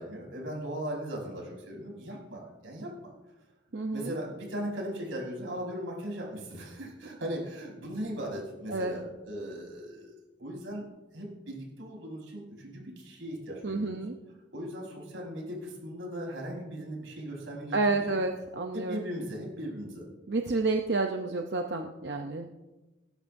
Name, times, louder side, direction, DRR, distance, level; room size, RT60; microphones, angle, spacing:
voice 1, 0.0-3.1 3.9-10.1 10.4-10.8 11.1-14.0 14.5-18.2 18.7-20.1, equal, 90° right, -2 dB, 5.2 m, -38 dB
voice 2, 3.7-4.1 8.7-8.9 13.6-14.2 17.7-19.0 20.3-22.5, right 3 dB, 60° right, 3 dB, 0.7 m, -30 dB
18.5 x 12.5 x 2.7 m, 1.1 s
head